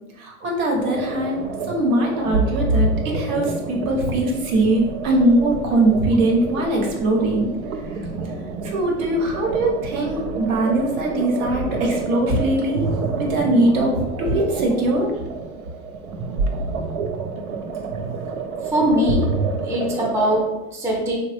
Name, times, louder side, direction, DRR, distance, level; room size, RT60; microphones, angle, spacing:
voice 1, 0.2-7.5 8.6-12.9 13.2-15.1, right 1 dB, 70° right, 0 dB, 1.1 m, -21 dB
sound 1, 0.7-20.4, right 3 dB, 85° right, 0.6 m, -28 dB
voice 2, 18.7-19.4 19.6-21.1, equal, 5° right, -3 dB, 0.4 m, -21 dB
3.0 x 2.2 x 3.2 m, 0.97 s
hypercardioid pair, 105°, 43 cm